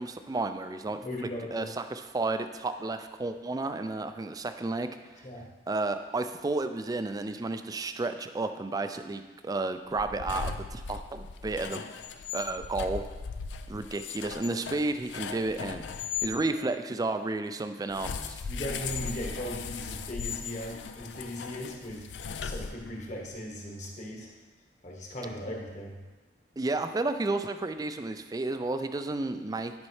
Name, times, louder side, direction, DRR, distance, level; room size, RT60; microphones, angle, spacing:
voice 1, 0.0-1.0 1.5-4.9 5.7-11.8 12.3-13.0 13.7-15.8 16.2-18.4 26.6-29.7, right 2 dB, 20° right, 9 dB, 0.3 m, -32 dB
voice 2, 1.0-1.7 5.2-5.5 18.5-22.1 22.4-24.3 24.8-26.0, equal, 45° left, -1 dB, 1.3 m, -38 dB
sound 1, 9.9-16.3 17.9-23.1, left 6 dB, 90° left, 0.4 m, -38 dB
10.5 x 5.3 x 3.2 m, 1.3 s
head